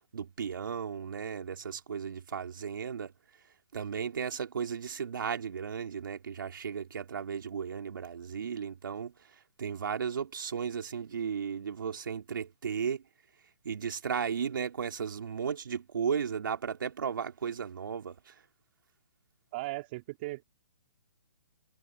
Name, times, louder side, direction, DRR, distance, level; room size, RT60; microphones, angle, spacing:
voice 1, 0.1-3.1 3.7-9.1 9.6-13.0 13.6-18.4, right 7 dB, 75° right, 3.7 m, -35 dB
voice 2, 19.5-20.4, right 20 dB, 30° right, 3.2 m, -37 dB
hypercardioid pair, 170°, 11 cm